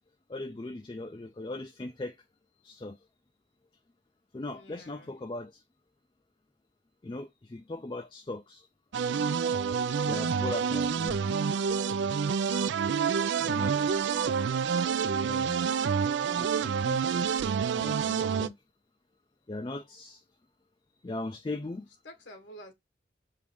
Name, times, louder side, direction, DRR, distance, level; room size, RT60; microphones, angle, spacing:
voice 1, 0.3-2.2 2.6-3.0 4.3-5.6 7.0-8.7 10.1-11.2 13.4-14.0 15.2-15.7 16.3-18.6 19.5-20.2 21.0-21.9, left 2 dB, 25° left, 0.4 m, -39 dB
voice 2, 4.5-5.1 22.0-22.7, equal, 80° left, 1.4 m, -49 dB
sound 1, 8.9-18.5, right 6 dB, 75° right, 0.4 m, -28 dB
4.6 x 2.5 x 3.5 m
head